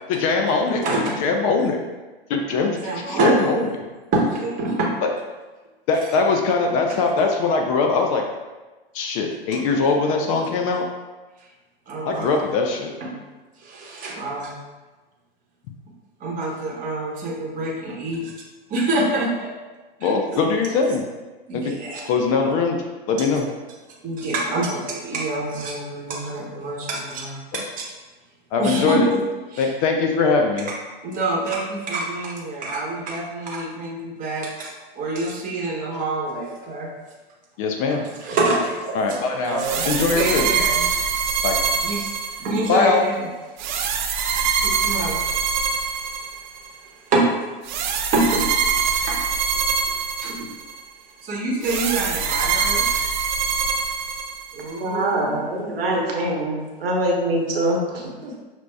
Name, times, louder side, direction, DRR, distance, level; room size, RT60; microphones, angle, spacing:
voice 1, 0.1-0.9 1.2-1.8 2.3-3.6 5.9-8.2 8.9-10.9 12.0-12.9 20.0-21.0 21.5-21.7 22.0-22.8 23.1-23.4 28.5-29.1 29.6-30.7 37.6-38.0 38.9-40.4 41.4-41.6 42.7-43.1, left 4 dB, 35° left, 3 dB, 0.4 m, -21 dB
voice 2, 0.6-1.2 2.6-3.7 4.1-4.9 10.4-10.6 11.9-12.4 13.0-13.1 13.6-14.5 16.2-18.3 18.7-19.5 20.0-20.1 21.5-22.1 22.4-22.5 23.2-23.3 24.0-27.9 28.6-29.2 29.5-29.7 31.0-36.9 37.9-41.4 41.8-43.3 44.6-45.2 45.9-46.1 47.1-47.6 48.1-48.5 49.1-49.2 50.2-50.5 51.2-52.9 54.5-55.4, right 2 dB, 25° right, -2 dB, 1.0 m, -26 dB
sound 1, 39.6-42.8 43.6-46.7 47.6-50.8 51.6-54.7, right 6 dB, 50° right, 0.5 m, -24 dB
voice 3, 54.8-58.4, right 1 dB, 70° right, -2 dB, 1.0 m, -24 dB
5.9 x 2.7 x 2.2 m, 1.2 s
figure-of-eight pair, 100°, 30 cm